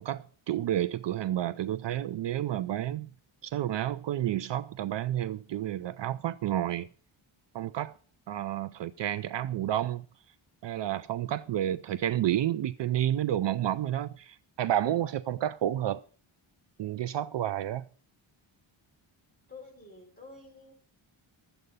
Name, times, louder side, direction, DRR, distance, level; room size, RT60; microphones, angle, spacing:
voice 1, 0.0-3.1 3.4-6.9 7.5-7.9 8.3-10.0 10.6-16.0 16.8-17.9, right 12 dB, 60° right, 0.5 m, -30 dB
voice 2, 19.5-20.7, left 3 dB, 15° left, 6.0 m, -49 dB
12.5 x 8.0 x 5.4 m
wide cardioid pair, 155°, 50 cm